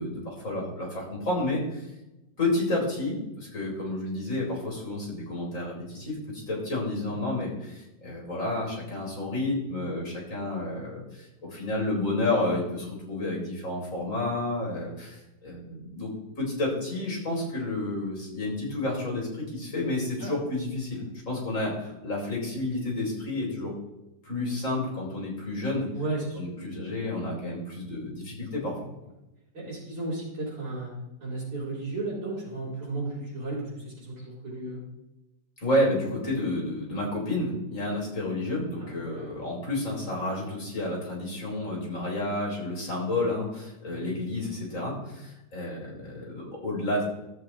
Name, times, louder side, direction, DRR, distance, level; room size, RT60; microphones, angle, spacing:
voice 1, 0.0-1.9 2.4-23.7 24.2-25.9 26.4-28.8 35.6-47.0, left 2 dB, 40° left, -3 dB, 3.5 m, -30 dB
voice 2, 25.9-26.4 29.5-30.9 31.2-34.8 38.8-39.2 43.9-44.2, right 2 dB, 70° right, -8 dB, 4.3 m, -34 dB
14.0 x 7.5 x 2.9 m, 0.94 s
omnidirectional pair, 2.1 m